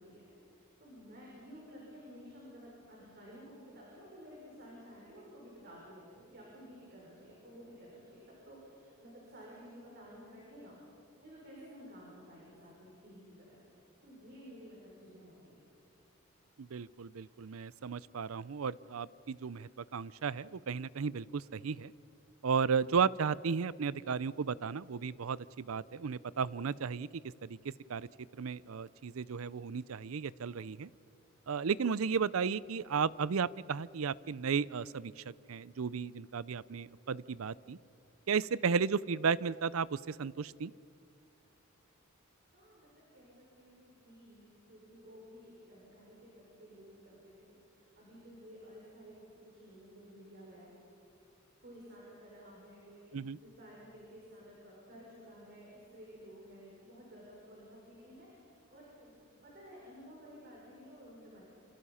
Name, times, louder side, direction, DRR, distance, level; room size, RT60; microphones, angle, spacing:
voice 1, 0.0-10.8 11.2-13.6 14.0-15.6 42.4-50.7 51.6-61.4, equal, 50° right, -4 dB, 6.3 m, -53 dB
voice 2, 16.6-21.9 22.4-27.6 27.9-28.1 28.3-30.9 31.5-37.8 38.3-40.7 53.1-53.4, right 6 dB, 90° right, 20 dB, 0.5 m, -34 dB
27.5 x 27.0 x 5.7 m, 2.4 s
head